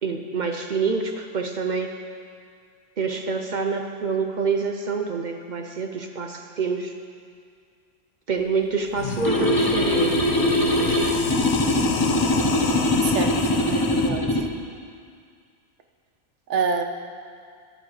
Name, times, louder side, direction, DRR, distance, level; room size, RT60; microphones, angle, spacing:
voice 1, 0.0-1.9 3.0-6.9 8.3-10.2, right 4 dB, 50° right, 4 dB, 0.6 m, -27 dB
sound 1, 8.4-8.5 8.8-14.1, left 5 dB, 85° left, 1.2 m, -30 dB
sound 2, 9.2-14.5, left 1 dB, 20° left, 0.8 m, -22 dB
voice 2, 13.0-14.2 16.5-16.8, right 5 dB, 70° right, 5 dB, 1.0 m, -27 dB
14.0 x 11.0 x 3.2 m, 2.2 s
omnidirectional pair, 1.3 m